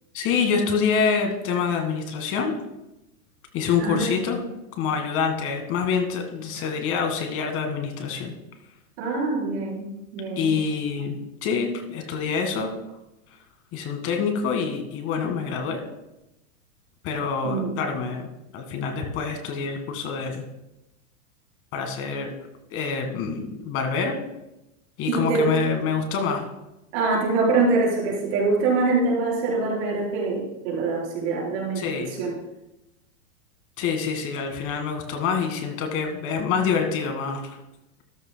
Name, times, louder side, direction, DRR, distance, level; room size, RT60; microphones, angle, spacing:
voice 1, 0.1-2.5 3.5-4.4 4.8-8.3 10.4-12.7 13.7-15.8 17.0-18.3 18.5-20.4 21.7-22.3 22.7-24.2 25.0-26.5 31.8-32.2 33.8-37.6, left 5 dB, 30° left, 5 dB, 1.8 m, -26 dB
voice 2, 3.8-4.3 9.0-10.6 17.4-17.7 25.1-25.6 26.9-32.4, right 3 dB, 50° right, -3 dB, 4.4 m, -24 dB
13.5 x 12.5 x 2.3 m, 0.94 s
supercardioid pair, 155°, 41 cm